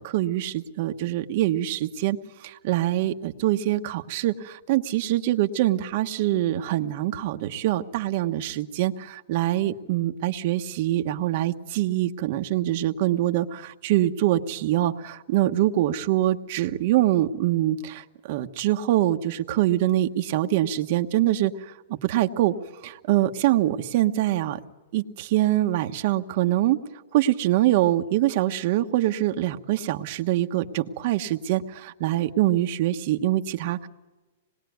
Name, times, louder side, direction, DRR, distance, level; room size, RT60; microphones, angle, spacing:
voice 1, 0.0-2.2 2.4-21.5 22.0-22.5 22.8-24.6 24.9-26.8 27.1-33.9, right 14 dB, 35° right, 6 dB, 1.2 m, -24 dB
26.0 x 20.5 x 9.4 m, 1.2 s
supercardioid pair, 180°, 0 cm